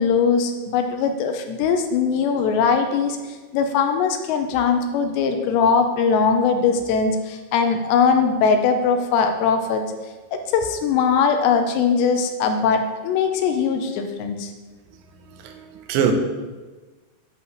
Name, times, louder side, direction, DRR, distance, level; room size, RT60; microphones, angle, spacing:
voice 1, 0.0-9.8 10.3-14.5, left 5 dB, 85° left, 3.0 m, -20 dB
voice 2, 15.4-16.1, right 9 dB, 85° right, 3.1 m, -23 dB
11.5 x 4.8 x 6.6 m
omnidirectional pair, 5.0 m